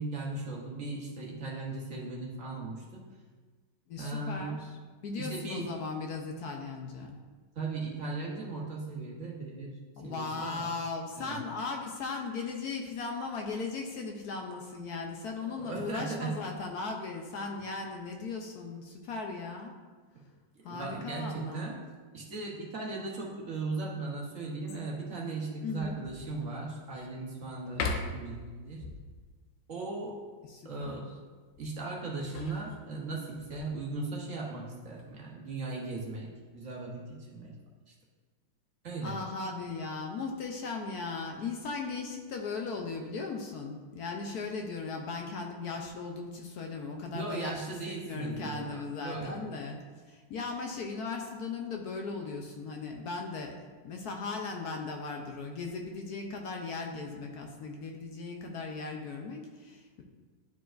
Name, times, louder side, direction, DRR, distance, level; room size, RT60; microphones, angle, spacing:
voice 1, 0.0-3.0 4.0-4.6 5.2-5.7 7.5-10.7 11.2-11.4 15.6-16.4 20.6-21.8 22.1-27.8 28.1-28.8 29.7-30.2 30.6-31.1 31.6-37.5 37.9-38.0 38.8-39.2 47.1-49.4, right 3 dB, 50° right, -3 dB, 1.4 m, -37 dB
voice 2, 3.9-7.2 10.0-19.8 20.6-21.7 25.6-26.0 28.8-28.9 30.5-31.0 39.0-49.8 50.1-60.0, left 4 dB, 70° left, 2 dB, 1.1 m, -37 dB
sound 1, 24.7-25.1 25.7-25.8 26.3-27.2 27.7-28.4 31.9-33.3 34.7-35.2, left 3 dB, 90° left, 1.4 m, -38 dB
11.0 x 4.6 x 2.5 m, 1.4 s
omnidirectional pair, 1.9 m